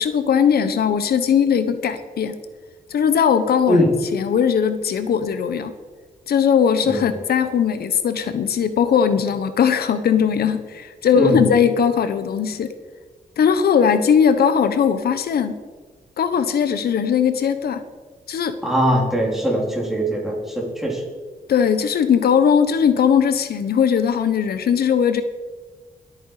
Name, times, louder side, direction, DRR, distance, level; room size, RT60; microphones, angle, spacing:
voice 1, 0.0-2.4 2.9-3.8 4.1-5.7 6.3-12.7 13.4-15.6 16.2-17.8 18.3-18.6 21.5-25.2, left 7 dB, 85° left, 10 dB, 1.0 m, -19 dB
voice 2, 18.6-21.0, equal, ahead, -2 dB, 3.7 m, -21 dB
21.5 x 8.8 x 4.9 m, 1.4 s
wide cardioid pair, 140°, 16 cm